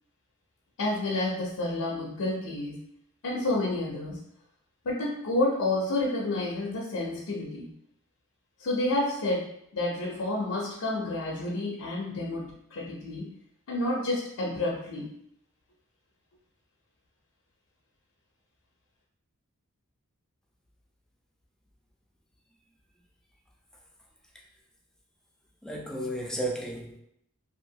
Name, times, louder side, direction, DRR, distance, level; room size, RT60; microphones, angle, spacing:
voice 1, 0.8-2.9 3.2-4.2 4.8-7.7 8.6-13.3 13.7-15.1, left 2 dB, 85° left, -3 dB, 0.5 m, -30 dB
voice 2, 25.6-27.0, right 1 dB, 5° left, 0 dB, 0.3 m, -33 dB
2.9 x 2.4 x 2.7 m, 0.72 s
head